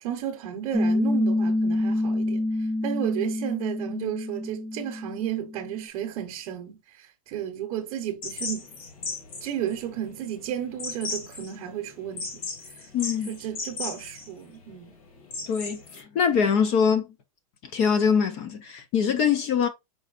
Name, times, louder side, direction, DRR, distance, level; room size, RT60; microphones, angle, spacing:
voice 1, 0.0-2.4 2.8-8.7 9.4-12.4 13.3-14.9, right 10 dB, 35° right, 0.9 m, -33 dB
Piano, 0.7-5.9, left 1 dB, 5° left, 0.5 m, -27 dB
sound 1, 8.2-16.0, left 4 dB, 75° left, 1.9 m, -37 dB
voice 2, 12.9-13.3 15.5-17.1 17.7-19.7, left 6 dB, 35° left, 0.8 m, -23 dB
4.7 x 4.1 x 2.4 m
supercardioid pair, 165°, 18 cm